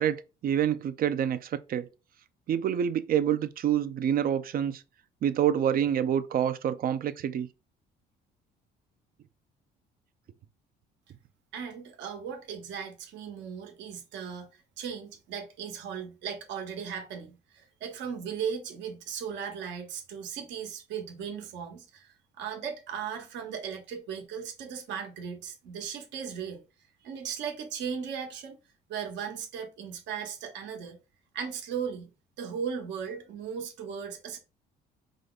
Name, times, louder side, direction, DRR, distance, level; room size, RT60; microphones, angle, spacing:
voice 1, 0.0-1.9 2.5-4.8 5.2-7.5, right 9 dB, 50° right, 0.6 m, -27 dB
voice 2, 11.5-14.5 14.8-26.6 27.0-28.6 28.9-31.0 31.3-34.4, right 7 dB, 75° right, 1.3 m, -37 dB
5.0 x 2.3 x 3.9 m
supercardioid pair, 85°, 19 cm